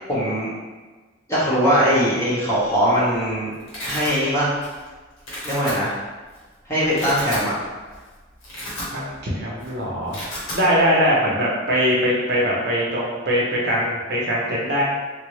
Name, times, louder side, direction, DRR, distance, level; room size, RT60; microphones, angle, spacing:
voice 1, 0.1-0.5 1.3-3.5 3.8-4.5 5.4-6.0 6.7-7.6, equal, 15° left, -9 dB, 0.9 m, -20 dB
Domestic sounds home sounds, 2.7-3.0 3.3-4.1 4.6-4.9 5.2-5.7 6.3-6.4 6.8-7.5 7.9-8.0 8.3-9.3 9.5-9.7 9.9-10.6, left 1 dB, 90° left, 1.3 m, -33 dB
voice 2, 8.9-10.2 10.5-14.8, equal, 55° right, -5 dB, 0.7 m, -21 dB
3.6 x 2.0 x 3.0 m, 1.3 s
head